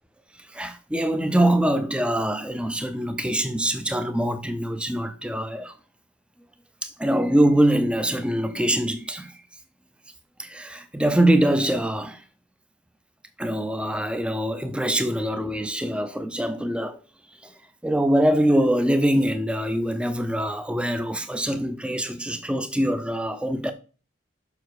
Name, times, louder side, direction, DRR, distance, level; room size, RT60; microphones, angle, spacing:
voice 1, 0.5-5.7 6.8-9.3 10.4-12.2 13.4-17.0 17.4-17.5 17.8-23.7, right 1 dB, 5° right, 0.6 m, -23 dB
6.9 x 5.9 x 4.7 m
head